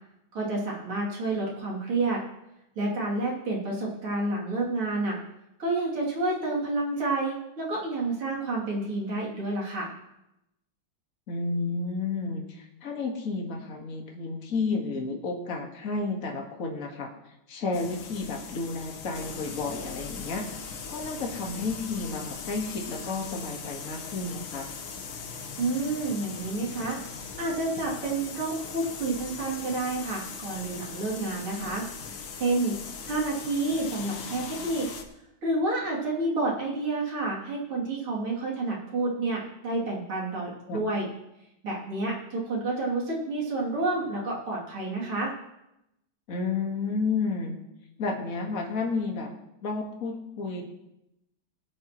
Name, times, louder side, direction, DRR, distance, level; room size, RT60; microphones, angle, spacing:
voice 1, 0.3-2.2 2.8-5.2 5.6-9.9 25.6-27.0 27.4-31.8 32.4-32.8 33.1-34.9 35.4-41.1 41.6-45.3, right 2 dB, 90° right, -4 dB, 3.8 m, -29 dB
voice 2, 11.3-17.1 17.5-24.7 40.7-40.8 46.3-47.6 48.0-49.3 49.6-50.6, left 4 dB, 45° left, 1 dB, 1.9 m, -31 dB
sound 1, 17.7-35.0, left 5 dB, 75° left, 1.9 m, -40 dB
19.0 x 9.0 x 3.0 m, 0.87 s
omnidirectional pair, 2.3 m